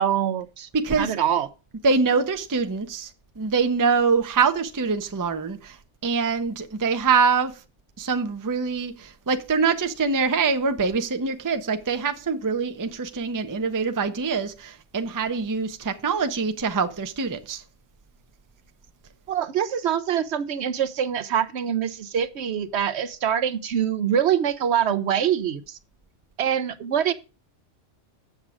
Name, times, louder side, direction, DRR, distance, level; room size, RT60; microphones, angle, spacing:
voice 1, 0.0-0.7 1.0-1.5 19.3-25.6 26.4-27.1, right 9 dB, 65° right, 0.9 m, -24 dB
voice 2, 0.7-1.1 1.8-3.1 3.4-5.8 6.0-7.5 8.0-17.6, right 5 dB, 25° right, 0.5 m, -24 dB
8.0 x 7.2 x 4.9 m
omnidirectional pair, 1.3 m